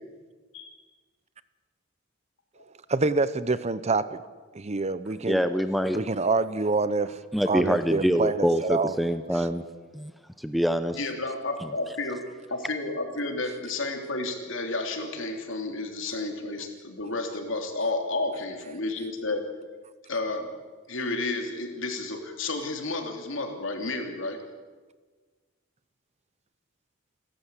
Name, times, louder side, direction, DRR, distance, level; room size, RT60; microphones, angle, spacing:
voice 1, 2.9-4.2 4.5-5.5 5.9-7.2 7.5-9.0 9.3-9.5, right 3 dB, 35° right, 15 dB, 0.7 m, -26 dB
voice 2, 5.3-6.0 7.3-9.6 9.9-10.1 10.4-11.0, equal, ahead, 9 dB, 0.7 m, -25 dB
voice 3, 10.9-12.2 12.5-19.4 20.1-20.5 20.9-24.4, left 2 dB, 65° left, 4 dB, 3.2 m, -31 dB
29.0 x 13.0 x 8.3 m, 1.4 s
head